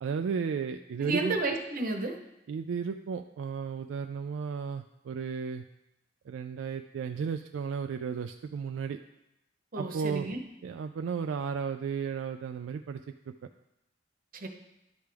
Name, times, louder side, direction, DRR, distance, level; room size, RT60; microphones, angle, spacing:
voice 1, 0.0-1.4 2.5-5.6 6.3-9.0 9.8-10.3 10.6-13.0 13.3-13.4, right 6 dB, 75° right, 7 dB, 0.3 m, -34 dB
voice 2, 1.0-2.2 9.7-10.4 14.3-14.5, right 2 dB, 50° right, 4 dB, 0.9 m, -31 dB
11.5 x 5.1 x 3.4 m, 0.91 s
head